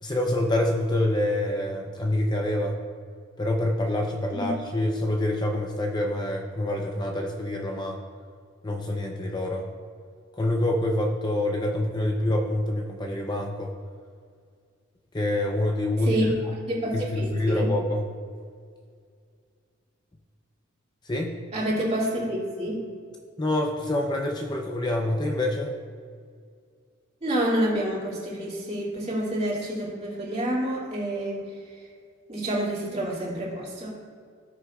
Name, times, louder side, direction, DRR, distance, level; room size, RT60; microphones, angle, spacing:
voice 1, 0.0-2.8 3.4-8.0 8.6-9.7 10.4-13.7 15.1-16.3 16.9-18.1 21.0-21.4 23.4-25.7, left 1 dB, 20° left, 1 dB, 0.6 m, -26 dB
voice 2, 16.0-17.7 21.5-22.8 27.2-31.4 32.3-33.9, right 1 dB, 30° right, -5 dB, 2.5 m, -28 dB
17.5 x 6.6 x 2.4 m, 2.1 s
head